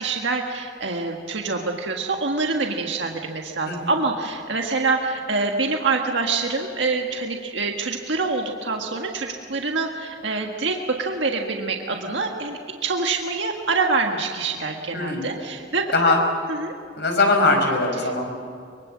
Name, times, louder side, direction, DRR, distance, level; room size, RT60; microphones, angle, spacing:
voice 1, 0.0-16.2 16.5-16.7 18.0-18.3, right 3 dB, 80° right, 2 dB, 1.7 m, -26 dB
voice 2, 14.9-15.4 15.9-16.2 17.0-18.3, left 3 dB, 65° left, 3 dB, 5.2 m, -21 dB
24.0 x 23.5 x 7.5 m, 2.2 s
head